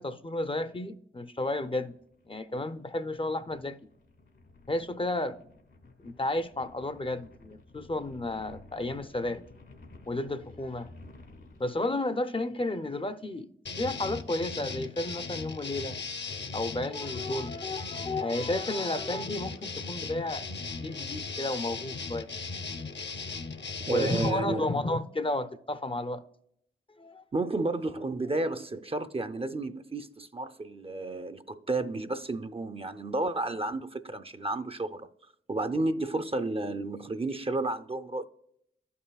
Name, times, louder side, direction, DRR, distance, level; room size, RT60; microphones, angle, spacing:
voice 1, 0.0-2.0 2.3-3.8 4.7-5.4 6.0-9.5 10.1-10.9 11.6-16.0 16.5-20.4 20.7-22.3 23.9-26.2 26.9-27.2, left 2 dB, 25° left, 0.5 m, -32 dB
sound 1, 1.9-11.8, left 2 dB, 85° left, 1.7 m, -54 dB
sound 2, 13.7-24.3, left 4 dB, 60° left, 0.7 m, -37 dB
voice 2, 23.9-24.6 27.3-35.1 35.5-38.3, right 2 dB, 30° right, 0.5 m, -32 dB
12.5 x 5.6 x 2.3 m
cardioid pair, 40°, 20 cm